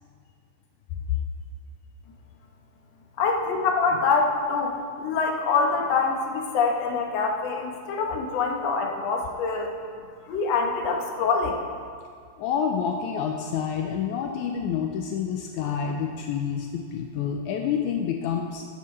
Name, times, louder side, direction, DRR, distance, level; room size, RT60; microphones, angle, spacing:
voice 1, 3.2-9.7 10.2-11.6, left 4 dB, 60° left, 1 dB, 2.1 m, -25 dB
voice 2, 12.4-18.6, left 7 dB, 80° left, 3 dB, 2.0 m, -28 dB
14.0 x 12.0 x 3.3 m, 2.2 s
omnidirectional pair, 3.5 m